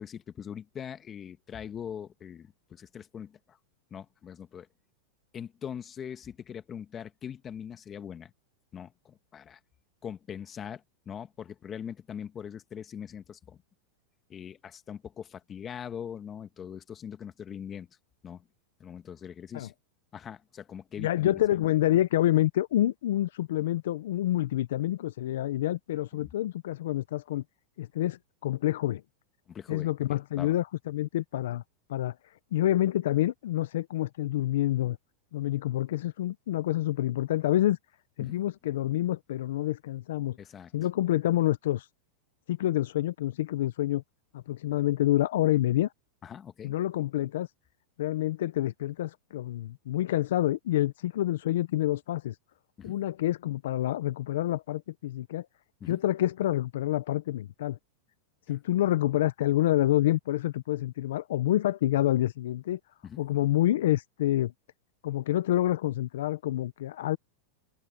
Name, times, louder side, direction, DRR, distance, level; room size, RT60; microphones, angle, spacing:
voice 1, 0.0-3.6 3.9-4.7 5.3-8.3 8.7-9.6 10.0-13.6 14.3-17.9 18.2-18.4 18.8-19.7 20.1-21.4 26.1-26.3 29.5-30.6 38.2-38.4 40.4-40.7 46.2-46.8 52.8-53.0 55.8-56.0 63.0-63.2, left 8 dB, 25° left, 1.6 m, -42 dB
voice 2, 21.0-27.4 27.8-29.0 29.7-31.6 31.9-32.1 32.5-35.0 35.3-37.8 38.2-40.4 40.7-41.9 42.5-44.0 44.3-45.9 46.6-47.5 48.0-52.3 52.8-55.5 55.9-57.8 58.5-62.8 63.2-64.5 65.0-67.2, left 14 dB, 75° left, 0.6 m, -27 dB
supercardioid pair, 140°, 0 cm